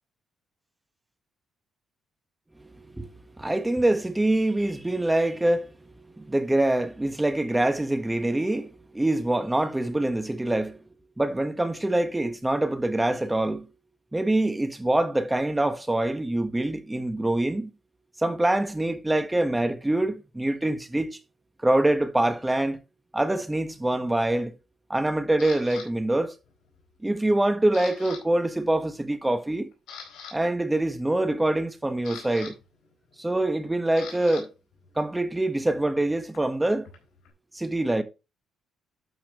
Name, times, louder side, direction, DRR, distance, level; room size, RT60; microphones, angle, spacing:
voice 1, 2.6-3.1 3.4-10.8 11.2-13.7 14.1-17.7 18.2-21.2 21.6-22.8 23.1-24.5 24.9-26.3 27.0-29.7 30.3-32.5 33.2-34.5 35.0-36.9 37.5-38.0, right 1 dB, 10° right, 1.5 m, -25 dB
Camera, 25.4-25.9 26.5-26.8 27.1-28.2 28.5-28.7 29.2-29.3 29.7-30.3 31.5-34.4 34.7-37.3, left 7 dB, 85° left, 4.1 m, -44 dB
12.0 x 5.7 x 3.1 m
cardioid pair, 90°, 0 cm